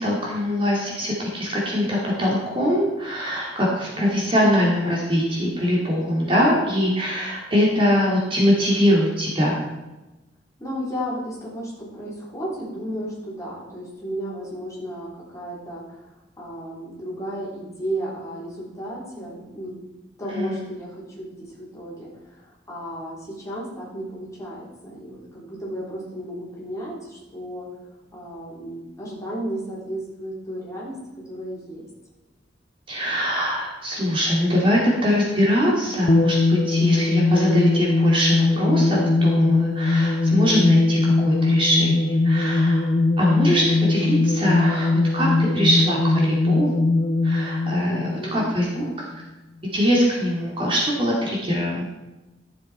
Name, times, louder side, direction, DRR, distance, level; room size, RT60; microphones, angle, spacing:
voice 1, 0.0-9.6 20.3-20.6 32.9-42.9 43.2-46.7 47.2-48.8 49.7-51.9, equal, 30° right, -4 dB, 2.3 m, -22 dB
voice 2, 10.6-19.8 20.2-27.7 28.1-31.0 31.2-31.9 47.9-48.5 48.7-49.0, equal, 15° left, -6 dB, 3.7 m, -34 dB
sound 1, 36.1-48.9, left 2 dB, 35° left, 0.6 m, -21 dB
13.5 x 7.3 x 4.4 m, 1.1 s
head